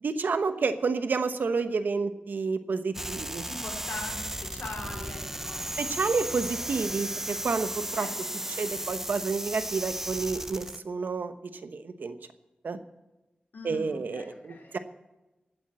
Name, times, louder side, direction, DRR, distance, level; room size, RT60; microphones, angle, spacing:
voice 1, 0.0-3.4 5.8-8.1 8.6-11.3 11.6-12.2 12.6-12.8 13.6-14.8, right 4 dB, 75° right, 9 dB, 1.0 m, -30 dB
sound 1, 2.9-10.8, right 1 dB, 10° right, 0.6 m, -35 dB
voice 2, 3.5-5.7 7.9-8.5 13.5-14.8, left 3 dB, 85° left, 0 dB, 3.8 m, -42 dB
16.5 x 9.1 x 7.5 m, 1.0 s
wide cardioid pair, 110°, 3 cm